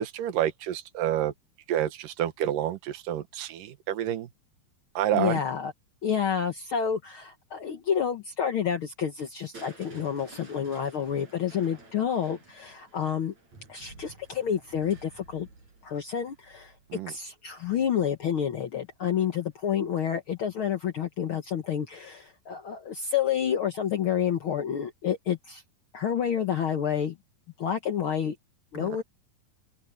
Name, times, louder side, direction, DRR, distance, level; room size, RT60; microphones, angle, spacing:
voice 1, 0.0-1.3 1.7-4.3 4.9-5.4 16.9-17.1 28.8-29.0, right 11 dB, 70° right, 3.0 m, -29 dB
voice 2, 5.1-5.7 6.0-13.3 13.7-15.5 15.8-16.7 17.1-25.6 25.9-27.2 27.6-28.3 28.7-29.0, left 8 dB, 80° left, 1.1 m, -29 dB
Crushing, 9.5-17.5 19.1-19.6 20.1-20.2, right 3 dB, 50° right, 8.5 m, -52 dB
open air
omnidirectional pair, 4.1 m